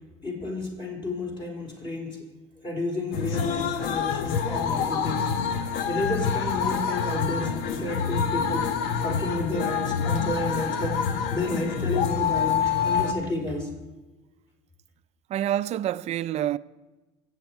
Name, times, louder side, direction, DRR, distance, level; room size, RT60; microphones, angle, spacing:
voice 1, 0.2-2.2 2.6-5.3 5.9-8.8 9.0-11.0 11.3-13.7, left 2 dB, 30° left, 4.4 m, -31 dB
sound 1, 3.1-13.1, left 7 dB, 75° left, 1.1 m, -27 dB
voice 2, 15.3-16.6, right 12 dB, 45° right, 0.5 m, -27 dB
23.0 x 8.2 x 4.8 m
supercardioid pair, 115°, 16 cm